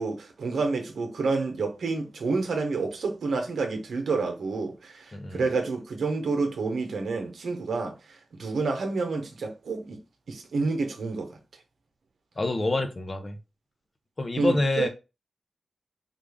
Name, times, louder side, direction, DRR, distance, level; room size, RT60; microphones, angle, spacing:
voice 1, 0.0-8.0 8.4-10.0 10.3-11.3 14.4-14.9, right 4 dB, 85° right, 0.8 m, -29 dB
voice 2, 5.1-5.4 12.4-13.4 14.2-14.9, left 2 dB, 45° left, 0.8 m, -27 dB
3.8 x 2.4 x 3.4 m
cardioid pair, 55°, 0 cm